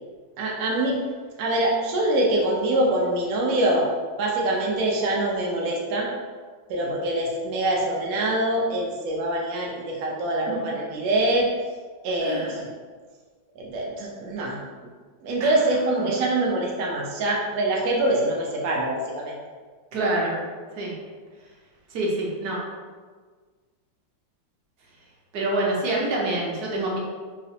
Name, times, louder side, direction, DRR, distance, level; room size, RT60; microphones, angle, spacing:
voice 1, 0.4-1.0 1.4-3.9 4.2-6.1 6.7-11.5 12.0-12.7 13.6-14.6 15.2-19.3, right 1 dB, 80° right, -2 dB, 0.7 m, -24 dB
voice 2, 19.9-20.3 20.7-20.9 21.9-22.6 25.3-27.0, right 2 dB, 65° right, -3 dB, 1.1 m, -26 dB
4.8 x 2.1 x 2.7 m, 1.5 s
omnidirectional pair, 2.2 m